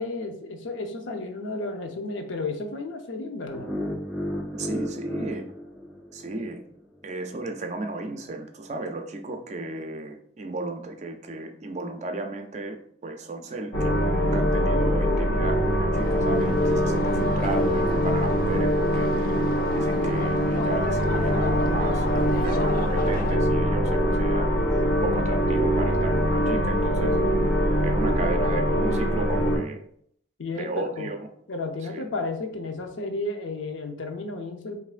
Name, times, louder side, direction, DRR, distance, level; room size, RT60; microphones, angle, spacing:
voice 1, 0.0-3.7 30.4-31.1 31.5-34.8, left 2 dB, 85° left, 4 dB, 0.7 m, -32 dB
sound 1, 3.5-6.6, equal, 5° left, 1.0 m, -33 dB
voice 2, 4.5-5.4 6.1-6.6 7.0-27.2 27.8-29.8 30.6-31.2 31.8-32.0, right 2 dB, 35° right, 5 dB, 0.4 m, -34 dB
sound 2, 13.7-29.6, equal, 25° left, 1.6 m, -23 dB
sound 3, 15.9-23.4, left 3 dB, 45° left, 0.3 m, -37 dB
5.5 x 2.6 x 2.5 m, 0.67 s
head